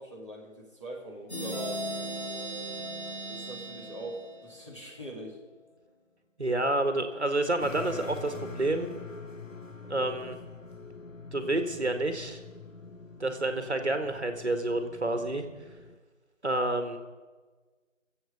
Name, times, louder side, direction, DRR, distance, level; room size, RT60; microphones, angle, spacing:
voice 1, 0.0-1.8 3.3-5.4, right 1 dB, 25° left, -5 dB, 2.5 m, -42 dB
sound 1, 1.3-4.9, right 1 dB, 60° left, 4.5 m, -37 dB
voice 2, 6.4-8.9 9.9-10.4 11.3-12.4 13.2-15.5 16.4-17.0, right 2 dB, 60° right, 7 dB, 1.6 m, -29 dB
sound 2, 7.6-16.0, left 4 dB, 85° left, 1.4 m, -44 dB
22.5 x 8.0 x 5.2 m, 1.3 s
figure-of-eight pair, 180°, 38 cm